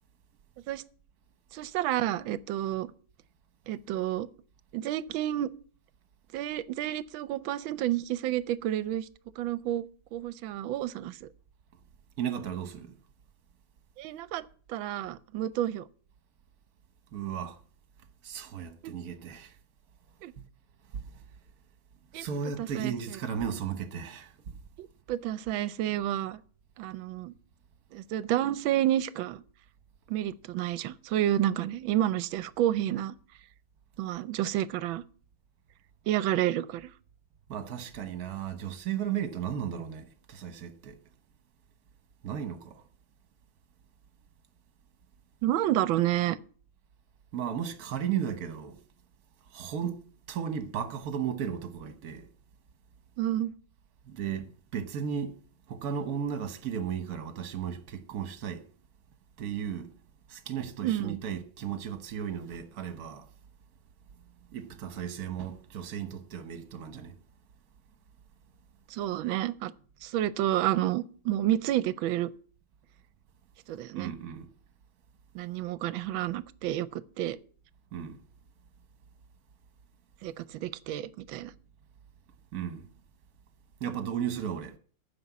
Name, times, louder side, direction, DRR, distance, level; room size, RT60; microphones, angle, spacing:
voice 1, 1.5-2.9 3.7-4.3 4.7-5.5 6.3-9.1 9.4-11.3 14.0-15.9 18.8-18.9 20.2-20.3 22.1-22.2 22.6-22.9 24.8-26.4 26.8-27.3 27.9-29.4 30.1-33.1 34.0-35.0 36.1-36.9 45.4-46.4 53.2-53.5 60.8-61.2 68.9-69.7 70.0-72.3 73.7-74.1 75.3-77.4 80.2-81.5, right 13 dB, 75° right, 1.4 m, -30 dB
voice 2, 12.2-13.0 17.1-17.6 18.2-19.6 20.9-21.2 22.1-24.5 37.5-41.0 42.2-42.8 47.3-48.8 49.5-52.3 54.0-55.4 55.7-58.6 59.4-59.9 60.3-63.3 64.5-67.1 73.9-74.5 77.9-78.2 82.5-82.9 83.8-84.8, right 8 dB, 50° right, 1.4 m, -35 dB
9.6 x 6.3 x 8.2 m
omnidirectional pair, 2.3 m